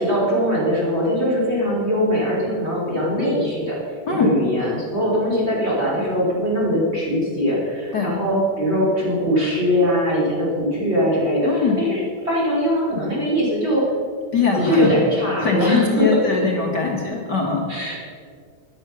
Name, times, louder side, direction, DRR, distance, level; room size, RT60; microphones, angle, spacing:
voice 1, 0.0-3.8 4.1-13.8 14.5-16.2 17.7-18.0, equal, 20° right, -5 dB, 3.7 m, -21 dB
voice 2, 11.4-11.8 14.3-14.9 15.4-17.6, left 4 dB, 45° left, -1 dB, 1.4 m, -21 dB
13.0 x 10.5 x 6.2 m, 2.1 s
omnidirectional pair, 3.8 m